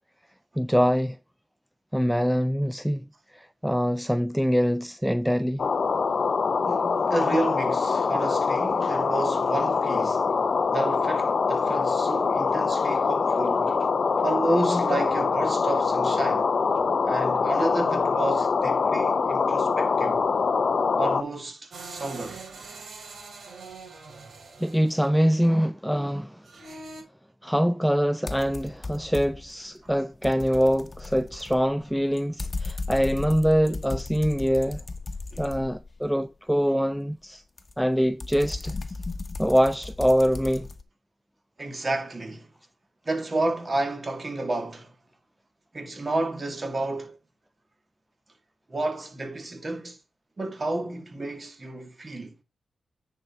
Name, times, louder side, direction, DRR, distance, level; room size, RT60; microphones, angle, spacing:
voice 1, 0.6-1.2 1.9-3.0 3.3-5.7 8.8-9.0 24.6-26.4 27.4-34.8 35.4-37.4 37.8-38.8 39.4-40.7, equal, ahead, 0.4 m, -24 dB
sound 1, 5.6-21.2, left 5 dB, 55° left, 0.6 m, -24 dB
voice 2, 6.6-10.3 10.7-13.7 14.2-16.5 17.0-20.3 21.0-22.4 29.8-29.9 35.3-35.4 41.6-42.5 43.1-44.9 45.7-47.2 48.7-50.0 50.4-52.4, right 2 dB, 35° right, 2.3 m, -30 dB
sound 2, 21.7-25.1 26.4-27.0, right 3 dB, 65° right, 3.3 m, -42 dB
sound 3, 28.3-29.5 29.9-36.1 37.6-40.8, left 3 dB, 35° left, 1.1 m, -36 dB
9.7 x 5.0 x 4.2 m
cardioid pair, 75°, 0 cm